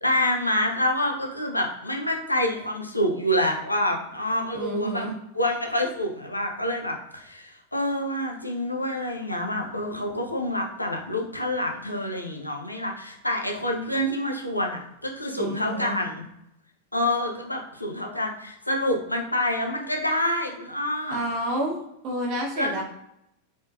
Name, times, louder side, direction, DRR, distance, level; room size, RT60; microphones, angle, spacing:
voice 1, 0.0-5.1 5.3-16.2 16.9-21.2 22.6-22.8, left 1 dB, 85° left, 1 dB, 0.9 m, -27 dB
voice 2, 4.5-5.1 15.4-16.0 21.1-22.8, right 1 dB, 40° right, 2 dB, 1.3 m, -30 dB
5.0 x 3.7 x 2.7 m, 0.80 s
figure-of-eight pair, 90°, 0 cm